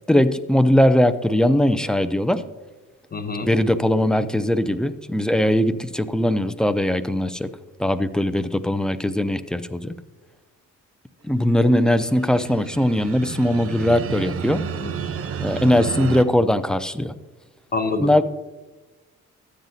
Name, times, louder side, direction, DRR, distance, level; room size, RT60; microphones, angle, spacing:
voice 1, 0.1-2.4 3.4-7.5 7.8-10.0 11.2-14.7 15.4-17.1 18.0-18.2, left 1 dB, 5° left, 12 dB, 0.4 m, -20 dB
voice 2, 3.1-3.5 14.8-14.9 17.7-18.2, left 3 dB, 30° left, 7 dB, 0.9 m, -26 dB
sound 1, 11.7-16.2, right 7 dB, 50° right, 0.7 m, -31 dB
12.5 x 8.9 x 2.7 m, 1.2 s
cardioid pair, 90°, 30 cm